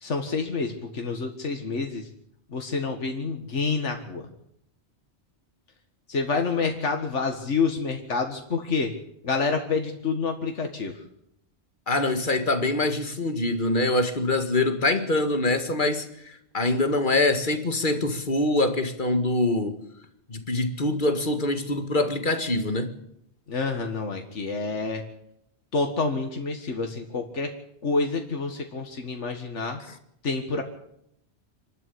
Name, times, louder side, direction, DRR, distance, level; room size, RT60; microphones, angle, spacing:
voice 1, 0.0-2.1 2.5-4.2 6.1-8.9 9.2-10.9 23.5-25.0 25.7-27.5 27.8-29.8 30.2-30.6, left 4 dB, 80° left, 2.1 m, -28 dB
voice 2, 11.9-19.7 20.3-23.0, left 2 dB, 45° left, 2.1 m, -24 dB
26.5 x 12.0 x 8.6 m
omnidirectional pair, 1.2 m